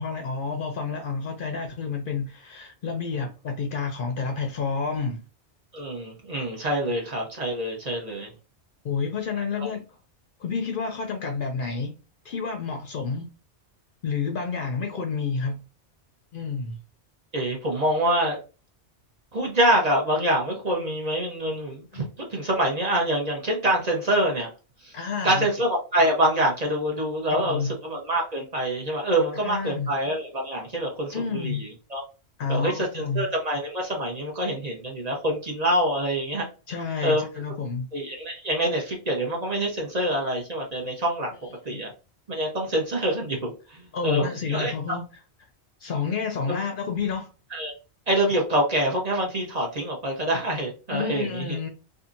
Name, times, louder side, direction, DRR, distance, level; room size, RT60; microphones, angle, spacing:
voice 1, 0.0-5.2 8.8-9.8 10.4-12.0 12.2-13.3 14.0-15.6 16.3-16.8 21.9-22.1 24.9-25.5 27.3-27.7 29.4-29.9 31.1-31.7 32.4-33.3 36.7-37.9 41.7-41.8 43.9-45.0 45.8-47.3 50.9-51.7, left 5 dB, 60° left, 0.6 m, -29 dB
voice 2, 5.7-8.3 17.3-18.4 19.3-24.5 24.8-25.0 25.2-32.0 32.5-36.5 37.0-37.3 37.9-41.3 41.7-41.9 42.3-44.7 46.5-46.6 47.5-47.7 48.1-51.6, right 1 dB, 40° right, 0.8 m, -26 dB
2.7 x 2.5 x 2.4 m
omnidirectional pair, 1.1 m